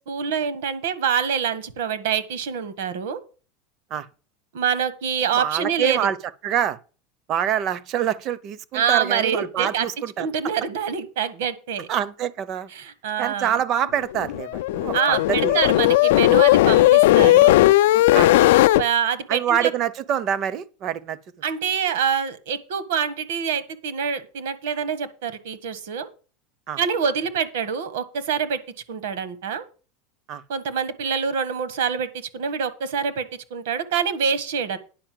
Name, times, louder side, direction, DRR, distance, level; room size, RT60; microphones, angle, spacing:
voice 1, 0.1-3.2 4.5-6.1 8.7-9.9 10.2-11.9 12.7-13.6 14.9-17.6 18.8-19.7 21.4-26.1 26.8-28.6 28.9-29.6 30.5-34.8, right 7 dB, 70° right, 1.5 m, -25 dB
voice 2, 5.3-6.2 6.4-6.8 7.3-10.3 11.9-12.7 13.2-15.6 18.1-18.3 19.3-21.2 26.7-26.8 30.3-30.4, right 9 dB, 30° right, 0.6 m, -25 dB
sound 1, 14.1-18.8, left 16 dB, 65° left, 0.4 m, -16 dB
10.0 x 5.3 x 7.6 m
supercardioid pair, 180°, 0 cm